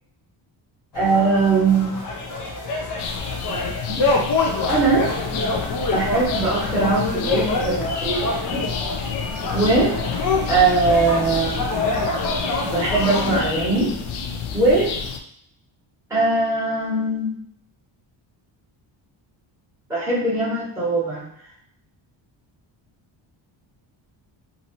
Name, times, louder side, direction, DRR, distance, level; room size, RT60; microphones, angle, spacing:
sound 1, 0.9-13.4, left 3 dB, 40° left, 0.6 m, -26 dB
voice 1, 0.9-2.0 3.4-4.0 4.7-5.1 5.9-8.6 9.5-10.0 10.5-11.8 12.6-13.9 14.5-14.9 16.1-17.3 19.9-21.3, right 3 dB, 5° right, -9 dB, 1.3 m, -21 dB
sound 2, 3.0-15.2, left 6 dB, 85° left, 0.5 m, -30 dB
2.8 x 2.8 x 2.7 m, 0.66 s
cardioid pair, 145°, 47 cm